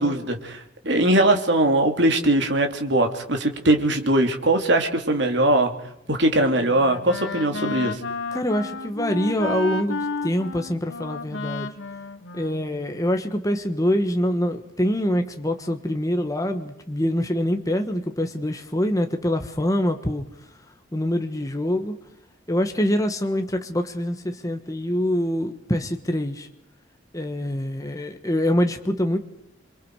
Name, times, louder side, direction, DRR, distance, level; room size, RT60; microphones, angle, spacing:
voice 1, 0.0-5.7 6.1-8.0, right 1 dB, 60° right, 4 dB, 3.0 m, -21 dB
Wind instrument woodwind instrument, 6.5-13.2, left 2 dB, 80° left, 1.6 m, -32 dB
voice 2, 8.3-11.7 12.3-20.2 20.9-21.9 22.5-26.5 27.1-29.2, left 1 dB, 15° left, 6 dB, 1.5 m, -25 dB
28.0 x 24.0 x 4.9 m, 0.78 s
head